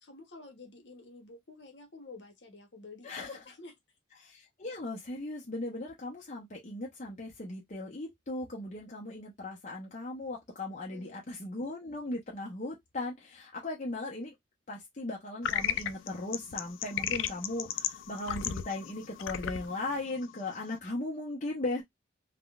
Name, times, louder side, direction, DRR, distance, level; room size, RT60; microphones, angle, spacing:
voice 1, 0.0-3.7 10.7-11.2, left 3 dB, 65° left, 1.0 m, -50 dB
voice 2, 3.0-3.4 4.2-14.3 14.7-21.8, left 2 dB, 40° left, 0.7 m, -38 dB
sound 1, 15.4-20.8, left 10 dB, 85° left, 0.4 m, -35 dB
3.6 x 2.2 x 2.4 m
head